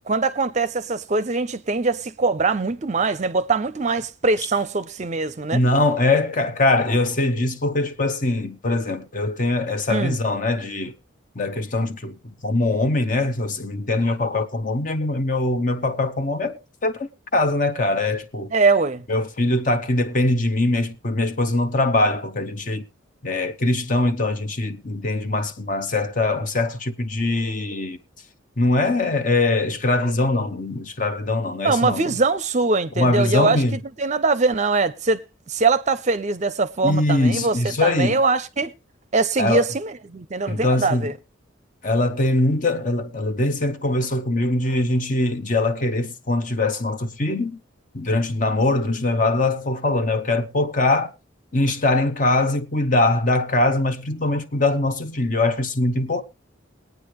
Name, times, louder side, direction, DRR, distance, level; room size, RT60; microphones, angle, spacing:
voice 1, 0.1-5.6 9.9-10.2 18.5-19.0 31.6-37.6 37.8-38.7 39.1-41.1, right 3 dB, 35° right, 0.6 m, -22 dB
voice 2, 5.5-10.9 11.4-18.5 19.1-22.9 23.2-28.0 28.6-32.1 33.0-33.8 36.8-38.2 39.4-39.6 40.5-41.1 41.8-47.6 47.9-51.1 51.5-56.2, left 2 dB, 40° left, 0.9 m, -22 dB
21.5 x 9.2 x 3.1 m
head